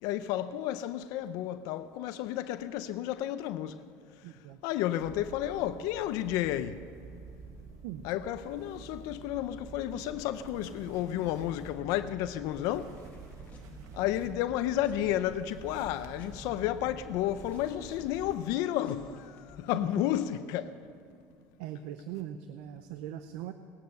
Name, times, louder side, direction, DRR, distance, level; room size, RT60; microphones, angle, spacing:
voice 1, 0.0-3.9 4.2-6.9 8.0-13.0 13.9-20.8, left 12 dB, 75° left, 0.6 m, -32 dB
voice 2, 4.2-4.6 7.8-8.0 21.6-23.5, right 11 dB, 85° right, 0.7 m, -40 dB
sound 1, 5.0-18.4, right 5 dB, 55° right, 1.1 m, -49 dB
sound 2, 12.7-14.5 14.8-20.6, left 3 dB, 25° left, 1.9 m, -56 dB
18.0 x 11.5 x 6.6 m
cardioid pair, 130°, 6 cm